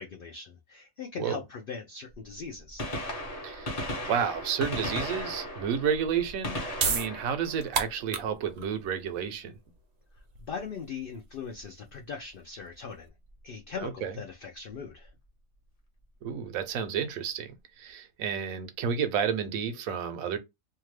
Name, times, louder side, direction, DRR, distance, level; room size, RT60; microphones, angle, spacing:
voice 1, 0.0-2.9 10.5-13.1 13.4-15.1, left 6 dB, 65° left, 0.5 m, -40 dB
Gunshot gunfire, 2.1-2.2 2.6-8.5 10.4-10.6 11.6-11.7 13.3-13.4 14.8-14.9 15.1-15.2, left 1 dB, 35° left, 0.8 m, -36 dB
voice 2, 3.4-3.8 4.1-9.5 13.8-14.2 16.2-20.4, right 7 dB, 80° right, 1.1 m, -31 dB
sound 1, 6.4-13.1, right 6 dB, 60° right, 0.8 m, -35 dB
2.8 x 2.3 x 3.1 m
omnidirectional pair, 1.5 m